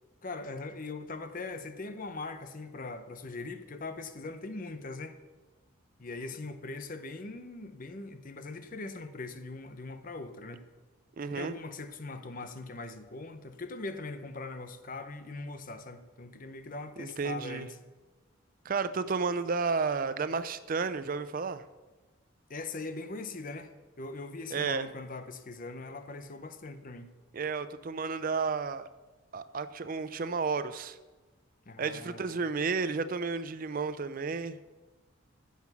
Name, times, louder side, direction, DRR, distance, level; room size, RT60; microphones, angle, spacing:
voice 1, 0.2-5.2 6.0-10.7 11.3-17.8 22.5-23.7 24.0-27.1 31.7-32.4, left 3 dB, 40° left, 9 dB, 0.7 m, -41 dB
voice 2, 11.2-11.5 17.0-17.7 18.6-21.6 24.5-24.8 27.3-28.9 29.3-31.0 31.8-34.6, right 4 dB, 40° right, 12 dB, 0.4 m, -32 dB
15.0 x 5.8 x 6.0 m, 1.2 s
head